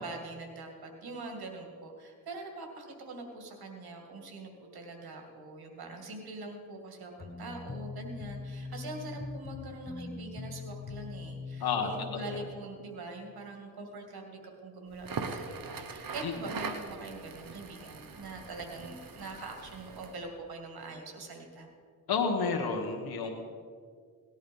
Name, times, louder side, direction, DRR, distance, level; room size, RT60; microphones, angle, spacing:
voice 1, 0.0-21.7, right 2 dB, 85° right, 3 dB, 2.4 m, -43 dB
sound 1, 7.2-12.5, left 4 dB, 25° left, 1.1 m, -42 dB
voice 2, 11.6-12.2 16.2-16.3 22.1-23.3, left 5 dB, 85° left, 3 dB, 1.3 m, -30 dB
Crackle, 14.9-20.2, right 5 dB, 65° right, 1.4 m, -41 dB
18.5 x 11.0 x 5.4 m, 2.1 s
cardioid pair, 50°, 36 cm